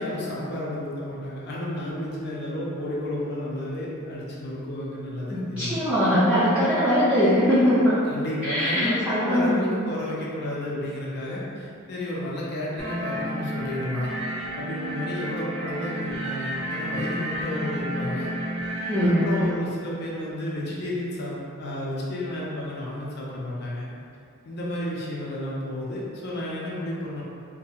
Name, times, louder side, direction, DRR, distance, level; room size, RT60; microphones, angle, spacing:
voice 1, 0.0-5.8 8.0-14.1 14.5-18.3 19.0-23.9 24.4-27.2, left 1 dB, 55° left, -5 dB, 0.5 m, -32 dB
voice 2, 5.3-8.0 8.5-9.7 18.9-19.3, equal, 5° right, -15 dB, 0.4 m, -21 dB
sound 1, 12.8-19.5, equal, 65° right, 0.4 m, -31 dB
2.7 x 2.3 x 2.3 m, 2.5 s
head